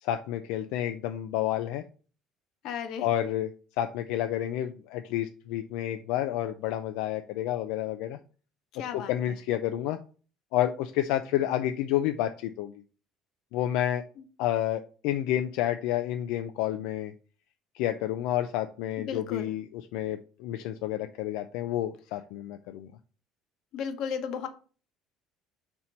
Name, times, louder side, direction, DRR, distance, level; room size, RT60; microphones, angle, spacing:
voice 1, 0.0-1.8 3.0-8.2 8.8-10.0 10.5-12.7 13.5-14.0 14.4-17.1 17.7-22.9, left 12 dB, 80° left, 7 dB, 0.4 m, -30 dB
voice 2, 2.6-3.1 8.7-9.1 19.0-19.5 23.7-24.5, left 7 dB, 60° left, 8 dB, 1.0 m, -34 dB
4.4 x 4.3 x 5.1 m, 0.38 s
cardioid pair, 150°, 0 cm